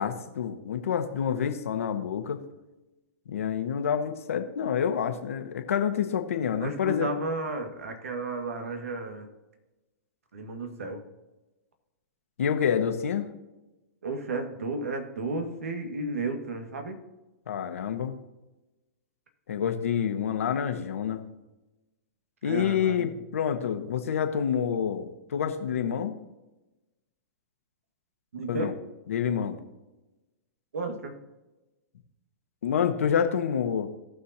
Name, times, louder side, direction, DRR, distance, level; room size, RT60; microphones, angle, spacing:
voice 1, 0.0-2.4 3.3-7.1 12.4-13.3 17.5-18.2 19.5-21.2 22.4-26.2 28.5-28.7 29.1-29.6 32.6-33.9, left 8 dB, 75° left, 7 dB, 1.4 m, -28 dB
voice 2, 6.6-9.3 10.3-11.0 14.0-17.0 22.4-23.1 28.3-28.7 30.7-31.1, right 2 dB, 80° right, 5 dB, 2.0 m, -33 dB
18.0 x 6.3 x 2.9 m, 1.1 s
hypercardioid pair, 120°, 8 cm